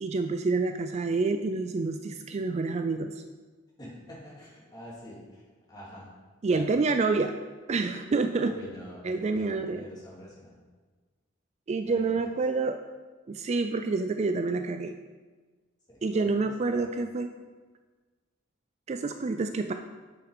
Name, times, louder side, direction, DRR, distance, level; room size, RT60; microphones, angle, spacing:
voice 1, 0.0-3.2 6.4-7.3 7.7-8.5 9.0-9.9 11.7-12.8 13.3-15.0 16.0-17.3 18.9-19.7, right 3 dB, 35° right, 7 dB, 0.3 m, -28 dB
voice 2, 3.8-6.1 6.4-6.8 8.4-10.5 11.8-12.1 15.9-16.9, equal, 20° left, -6 dB, 2.8 m, -46 dB
8.1 x 6.3 x 4.9 m, 1.3 s
head